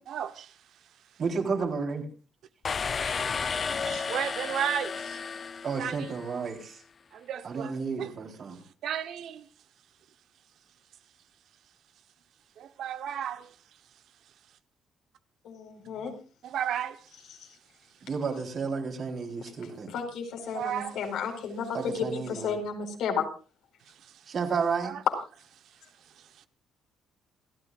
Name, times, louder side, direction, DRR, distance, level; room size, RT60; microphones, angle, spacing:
voice 1, 0.1-0.6 3.0-5.2 5.8-6.1 7.1-8.1 8.5-9.5 12.6-13.5 16.4-17.1 20.5-21.0 23.9-24.2 24.8-25.0 26.1-26.5, right 9 dB, 65° right, 1.0 m, -35 dB
voice 2, 1.2-2.0 5.6-6.8 7.4-8.6 18.0-19.9 21.7-22.6 24.3-24.9, right 5 dB, 45° right, 3.8 m, -32 dB
sound 1, 2.6-6.4, left 5 dB, 30° left, 0.6 m, -33 dB
voice 3, 15.4-16.1 17.4-17.5 19.9-23.2, left 6 dB, 80° left, 4.7 m, -33 dB
28.0 x 14.0 x 2.5 m
cardioid pair, 145°, 0 cm